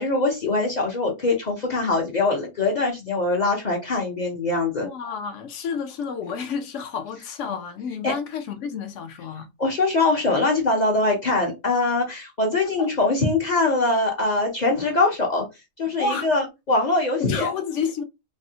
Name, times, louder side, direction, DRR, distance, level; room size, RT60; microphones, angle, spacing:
voice 1, 0.0-4.9 8.0-8.1 9.6-15.5 15.8-17.5, left 2 dB, 45° left, 0.6 m, -22 dB
voice 2, 4.8-9.5 12.8-12.9 16.0-16.3 17.2-18.0, left 5 dB, 70° left, 0.9 m, -30 dB
3.4 x 2.0 x 2.7 m
omnidirectional pair, 1.4 m